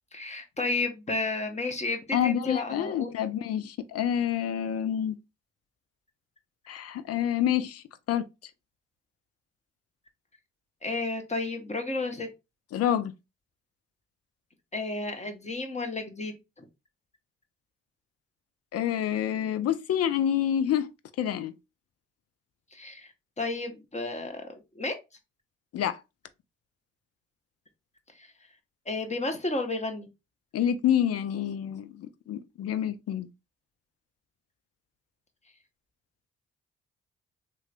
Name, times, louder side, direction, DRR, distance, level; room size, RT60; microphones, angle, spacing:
voice 1, 0.1-3.1 10.8-12.3 14.7-16.6 22.7-24.4 24.7-24.9 28.1-28.3 28.9-30.1, left 2 dB, 25° left, 1.1 m, -32 dB
voice 2, 2.1-5.2 6.7-8.2 12.7-13.1 18.7-20.9 21.2-21.5 25.7-26.0 30.5-33.3, left 10 dB, 55° left, 0.5 m, -28 dB
3.1 x 2.9 x 2.4 m
hypercardioid pair, 40°, 30 cm